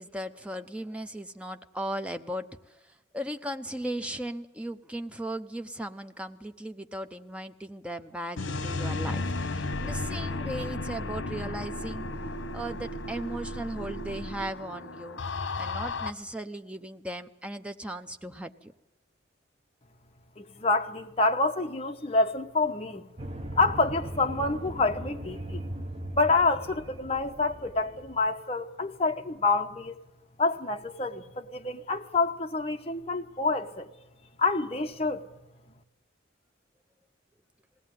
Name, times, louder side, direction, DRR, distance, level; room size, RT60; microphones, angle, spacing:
voice 1, 0.0-12.0 12.5-15.2 15.6-18.7, right 1 dB, 5° right, 0.7 m, -37 dB
sound 1, 8.4-16.1, left 2 dB, 85° left, 1.0 m, -34 dB
voice 2, 20.4-23.0 23.5-25.6 26.1-30.0 30.4-33.9 34.4-35.2, left 3 dB, 30° left, 1.0 m, -27 dB
sound 2, 23.2-28.3, right 1 dB, 35° right, 1.3 m, -39 dB
20.5 x 17.0 x 9.3 m
head